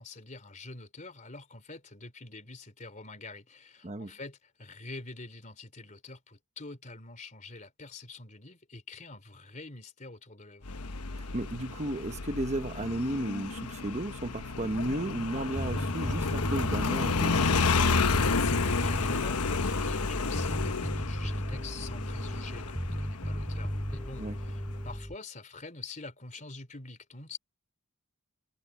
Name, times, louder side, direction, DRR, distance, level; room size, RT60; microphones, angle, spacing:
voice 1, 0.0-10.7 18.2-27.4, left 3 dB, 35° left, 3.5 m, -46 dB
Motorcycle, 10.7-25.0, left 4 dB, 90° left, 1.1 m, -31 dB
voice 2, 11.2-17.5 24.2-24.4, right 1 dB, 30° right, 1.1 m, -34 dB
Bass guitar, 15.6-25.2, equal, 5° left, 3.1 m, -35 dB
head